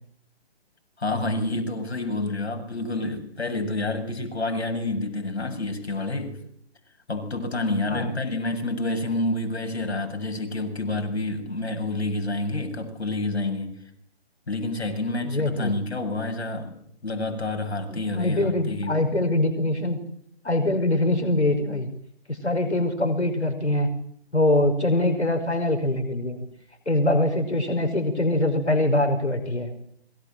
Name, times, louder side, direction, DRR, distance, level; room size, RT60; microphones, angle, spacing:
voice 1, 1.0-6.4 7.1-13.8 14.5-19.0, left 2 dB, 75° left, 7.5 m, -28 dB
voice 2, 15.3-15.7 17.9-20.0 20.4-21.9 22.3-23.9 24.3-26.4 26.9-29.7, left 1 dB, 90° left, 5.5 m, -23 dB
27.0 x 23.5 x 7.8 m
figure-of-eight pair, 145°, 33 cm